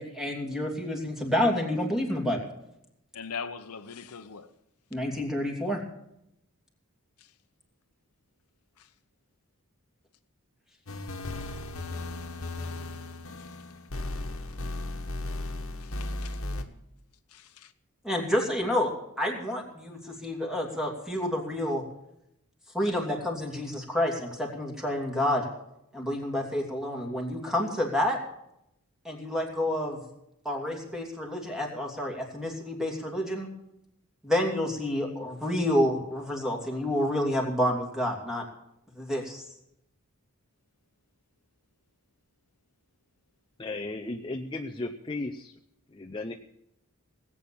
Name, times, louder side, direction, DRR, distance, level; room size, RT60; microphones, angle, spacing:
voice 1, 0.0-2.5 4.9-5.8 18.0-18.9 19.2-21.8 22.7-25.4 25.9-28.2 29.0-30.0 30.4-33.5 34.2-38.4 39.0-39.4, left 1 dB, ahead, 0 dB, 2.8 m, -29 dB
voice 2, 3.1-4.5 7.2-7.3 8.8-8.9 13.4-13.6 15.8-16.4 17.3-17.7, left 6 dB, 85° left, 10 dB, 0.9 m, -41 dB
sound 1, 10.9-16.6, left 2 dB, 65° left, 1.4 m, -36 dB
voice 3, 43.6-45.5 45.9-46.3, left 2 dB, 20° left, 4 dB, 0.6 m, -35 dB
18.5 x 8.6 x 7.1 m, 0.80 s
head